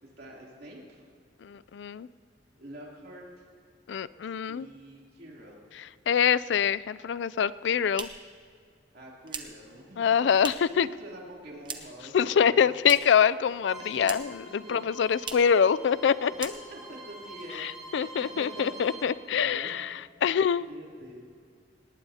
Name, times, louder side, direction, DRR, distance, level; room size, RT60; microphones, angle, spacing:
voice 1, 0.0-1.0 2.5-3.4 4.5-5.6 8.9-10.1 10.7-12.7 13.8-14.1 14.5-15.0 16.5-19.7 20.3-21.3, right 1 dB, 60° right, -3 dB, 3.1 m, -46 dB
voice 2, 1.4-2.1 3.9-4.7 5.8-8.1 10.0-10.9 12.1-16.5 17.6-19.9 20.2-20.7, left 7 dB, 80° left, 17 dB, 0.4 m, -25 dB
sound 1, 7.5-10.8 11.1-12.1 12.4-13.3 13.6-14.5 14.7-14.8 15.2-15.6 15.9-16.1 16.3-17.0, right 5 dB, 25° right, 1.0 m, -41 dB
Bowed string instrument, 13.7-19.1, right 1 dB, 5° right, 3.2 m, -46 dB
19.0 x 18.5 x 2.8 m, 2.2 s
head